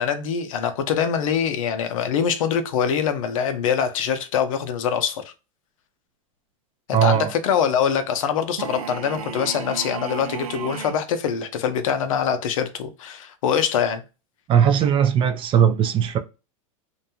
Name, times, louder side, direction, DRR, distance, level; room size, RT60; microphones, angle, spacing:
voice 1, 0.0-5.3 6.9-14.0, left 7 dB, 70° left, 0.6 m, -24 dB
voice 2, 6.9-7.3 14.5-16.2, right 8 dB, 30° right, 0.4 m, -18 dB
sound 1, 8.6-11.1, right 7 dB, 90° right, 0.5 m, -33 dB
2.6 x 2.2 x 2.7 m
hypercardioid pair, 110°, 18 cm